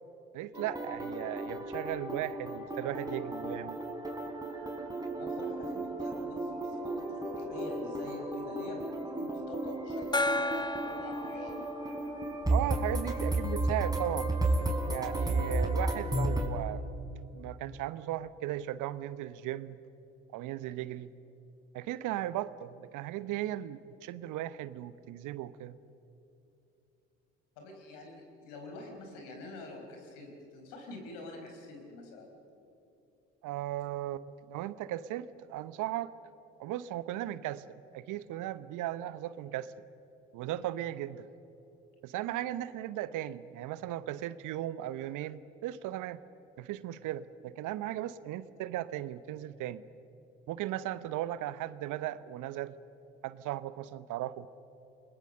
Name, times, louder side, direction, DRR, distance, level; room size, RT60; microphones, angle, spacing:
voice 1, 0.3-3.8 12.5-14.3 14.9-16.9 17.3-19.8 20.3-21.1 21.7-25.8 33.4-36.1 36.6-37.6 37.9-39.7 40.3-41.3 42.0-46.2 46.6-49.8 50.5-52.7 53.2-54.5, right 13 dB, 65° right, 16 dB, 1.0 m, -37 dB
sound 1, 0.5-16.5, right 2 dB, 10° right, 4.6 m, -33 dB
voice 2, 5.2-11.6 27.6-32.4, left 2 dB, 75° left, 2 dB, 5.0 m, -46 dB
Gong, 10.1-13.4, left 2 dB, 15° left, 0.9 m, -35 dB
29.5 x 22.0 x 6.7 m, 2.9 s
hypercardioid pair, 45°, 34 cm